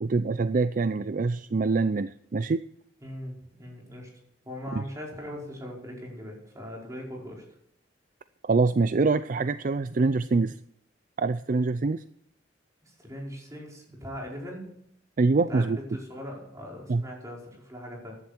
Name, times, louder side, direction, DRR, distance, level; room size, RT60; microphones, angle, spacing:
voice 1, 0.0-2.6 4.7-4.8 8.4-10.6 11.2-12.0 15.2-15.8 16.9-17.0, right 3 dB, 45° right, 13 dB, 0.4 m, -25 dB
voice 2, 3.0-4.1 4.4-7.4 13.0-14.7 15.5-18.2, equal, 20° right, -2 dB, 5.1 m, -40 dB
15.0 x 11.0 x 4.4 m, 0.73 s
head